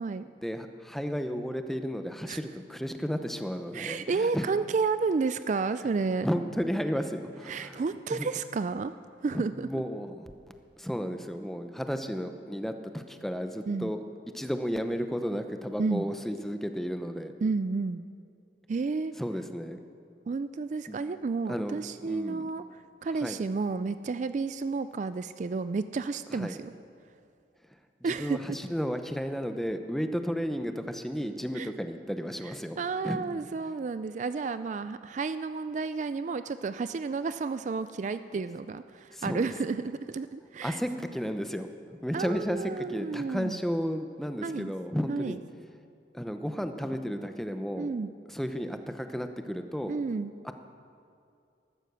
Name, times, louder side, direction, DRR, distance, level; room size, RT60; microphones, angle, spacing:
voice 1, 0.4-4.5 6.2-7.8 8.1-8.3 9.3-10.3 10.8-14.0 14.3-17.3 19.2-19.8 20.9-21.0 21.5-22.4 23.2-23.4 26.3-26.6 28.0-32.8 33.0-33.2 39.1-39.5 40.6-45.4 46.1-47.9 48.3-50.0 50.4-50.5, equal, ahead, 7 dB, 0.7 m, -33 dB
voice 2, 3.7-6.3 7.5-8.9 9.2-9.7 13.7-13.9 15.8-16.1 17.4-18.0 18.7-19.1 20.3-22.6 23.0-26.7 28.0-28.4 31.6-31.7 32.8-40.8 42.1-43.6 44.4-44.7 45.1-45.4 47.8-48.1 49.9-50.3, right 4 dB, 40° right, 12 dB, 0.3 m, -31 dB
14.5 x 12.5 x 6.8 m, 2.4 s
head